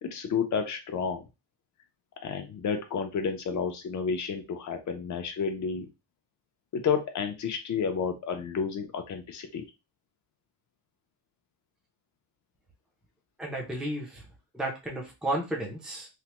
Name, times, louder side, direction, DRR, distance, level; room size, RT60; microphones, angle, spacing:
voice 1, 0.0-1.2 2.2-5.9 6.7-9.7, left 6 dB, 40° left, 5 dB, 0.6 m, -31 dB
voice 2, 13.4-14.2 14.5-16.1, right 1 dB, ahead, -1 dB, 0.6 m, -33 dB
3.3 x 2.1 x 2.9 m, 0.26 s
cardioid pair, 175°, 43 cm